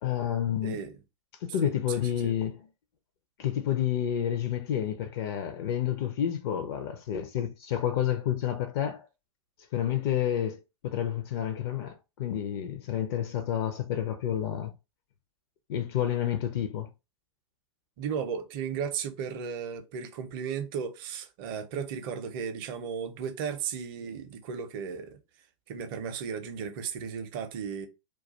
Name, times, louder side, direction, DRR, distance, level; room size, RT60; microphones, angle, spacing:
voice 1, 0.0-0.8 1.4-2.7 3.4-9.1 9.7-14.7 15.7-16.9, left 10 dB, 45° left, 0.5 m, -29 dB
voice 2, 0.6-0.9 1.6-1.7 2.2-2.3 18.0-25.2 25.7-27.9, right 7 dB, 40° right, 0.6 m, -35 dB
2.3 x 2.3 x 3.9 m
figure-of-eight pair, 95°, 17 cm